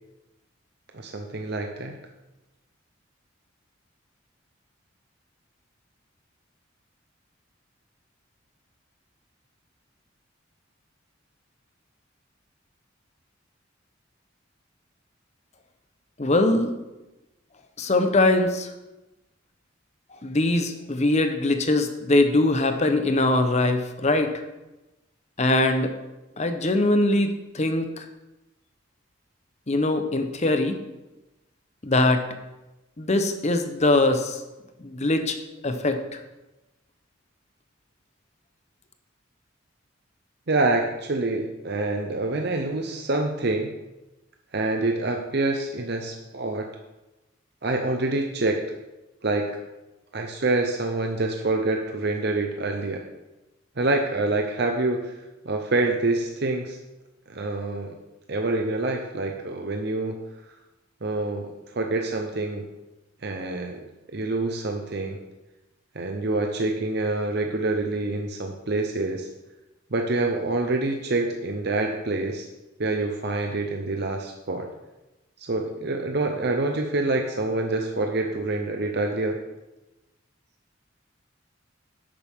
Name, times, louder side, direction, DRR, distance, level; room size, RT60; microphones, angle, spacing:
voice 1, 0.9-2.0 40.5-43.7 44.5-46.7 47.6-48.6 49.2-49.5 50.1-53.0 53.8-55.1 55.4-56.8 57.3-57.9 58.3-60.2 61.0-62.6 63.2-63.8 64.1-65.2 65.9-69.3 69.9-72.5 72.8-74.7 75.4-79.4, right 2 dB, 55° right, 3 dB, 0.8 m, -26 dB
voice 2, 16.2-16.7 17.8-18.7 20.2-24.4 25.4-26.0 26.4-28.0 29.7-30.8 31.8-32.3 33.0-34.4 34.8-35.4 35.6-36.2, left 2 dB, 35° left, 7 dB, 0.9 m, -22 dB
11.0 x 8.7 x 3.7 m, 1.0 s
head